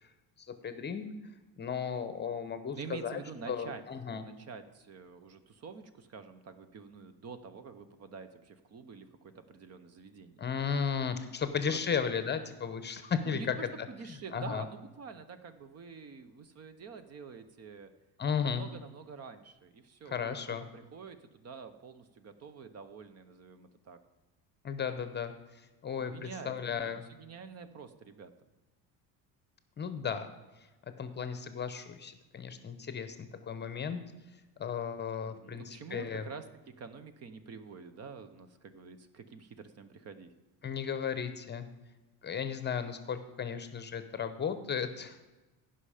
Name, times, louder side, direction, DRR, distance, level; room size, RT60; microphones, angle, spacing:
voice 1, 0.4-1.1 1.6-3.2 3.5-4.2 10.4-13.6 14.1-14.6 18.2-18.6 20.1-20.6 24.6-25.3 25.8-27.0 29.8-30.3 31.0-34.0 34.6-36.3 40.6-41.7 42.2-45.2, left 7 dB, 25° left, 10 dB, 0.8 m, -35 dB
voice 2, 2.7-3.8 4.1-9.1 9.3-10.4 11.7-11.8 13.2-17.9 18.4-24.0 26.0-28.3 35.3-40.3, right 5 dB, 40° right, 11 dB, 0.8 m, -47 dB
15.5 x 5.7 x 5.0 m, 1.1 s
cardioid pair, 120°, 41 cm